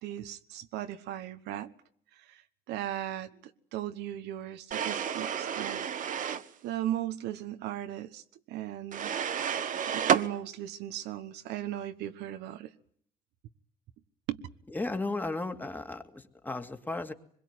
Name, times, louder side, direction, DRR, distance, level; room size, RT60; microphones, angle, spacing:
voice 1, 0.0-1.7 2.2-2.4 2.7-3.3 3.7-5.8 6.6-8.2 8.5-9.1 9.9-12.7 14.3-14.4, right 12 dB, 80° right, 1.3 m, -37 dB
sound 1, 4.7-6.5 8.9-10.3, right 8 dB, 50° right, 1.3 m, -30 dB
voice 2, 14.7-17.1, left 2 dB, 10° left, 2.3 m, -35 dB
24.5 x 22.0 x 9.5 m
cardioid pair, 110°, 17 cm